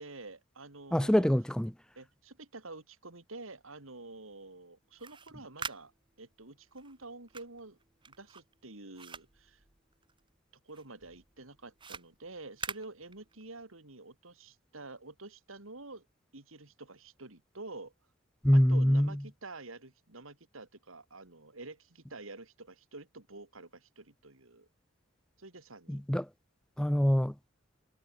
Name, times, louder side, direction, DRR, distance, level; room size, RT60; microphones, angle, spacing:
voice 1, 0.0-1.3 2.0-5.9 6.2-7.8 8.1-9.6 10.7-16.1 16.3-17.9 18.5-24.7 25.4-26.0, right 2 dB, 85° right, 3.5 m, -48 dB
voice 2, 0.9-1.7 18.4-19.1 25.9-26.3 26.8-27.3, equal, 5° left, 0.5 m, -25 dB
sound 1, 4.8-10.4 10.7-13.6, right 5 dB, 25° right, 1.4 m, -46 dB
head